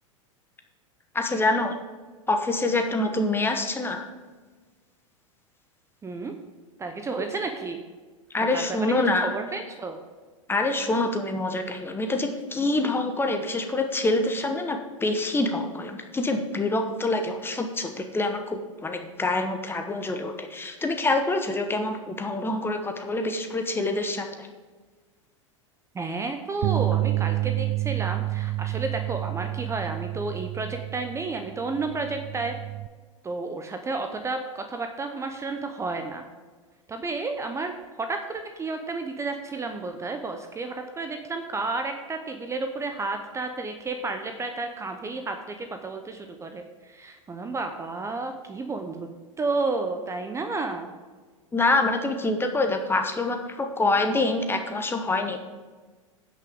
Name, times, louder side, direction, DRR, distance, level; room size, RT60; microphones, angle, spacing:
voice 1, 1.1-1.7 2.3-4.0 8.3-9.4 10.5-24.5 51.5-55.4, left 2 dB, 15° left, 5 dB, 1.1 m, -26 dB
voice 2, 6.0-6.3 6.8-7.8 8.5-8.9 9.2-10.0 25.9-32.5 33.2-36.2 36.9-49.1 49.4-50.9, right 3 dB, 15° right, 6 dB, 0.8 m, -31 dB
Bass guitar, 26.6-32.9, right 17 dB, 45° right, 0.4 m, -29 dB
16.5 x 6.0 x 3.6 m, 1.4 s
hypercardioid pair, 95°, 17 cm